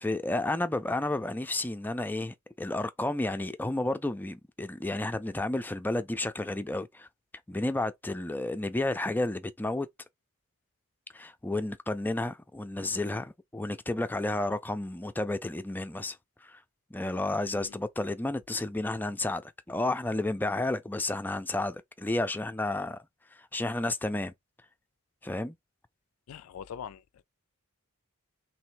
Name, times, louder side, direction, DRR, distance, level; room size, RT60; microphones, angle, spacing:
voice 1, 0.0-7.1 7.5-9.9 11.1-16.2 16.4-16.6 16.9-23.0 23.3-24.3 25.2-25.5, left 2 dB, 10° left, 0.4 m, -31 dB
voice 2, 26.3-27.0, left 8 dB, 80° left, 0.4 m, -42 dB
3.2 x 3.1 x 4.6 m
head